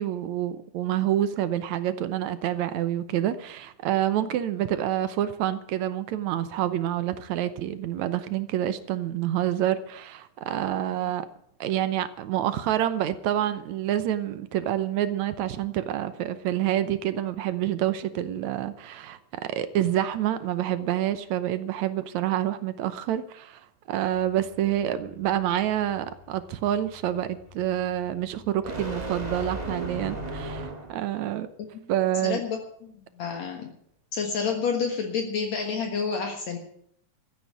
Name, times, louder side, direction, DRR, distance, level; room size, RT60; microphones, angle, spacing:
voice 1, 0.0-11.3 11.6-23.6 23.9-31.5 31.9-32.4, right 12 dB, 70° right, 13 dB, 2.1 m, -27 dB
voice 2, 10.8-11.1 31.7-31.8 32.2-33.7 34.1-36.6, left 5 dB, 65° left, 3 dB, 2.7 m, -30 dB
sound 1, 24.1-31.1, right 1 dB, 15° right, 1.7 m, -37 dB
14.0 x 9.2 x 9.4 m, 0.66 s
omnidirectional pair, 3.5 m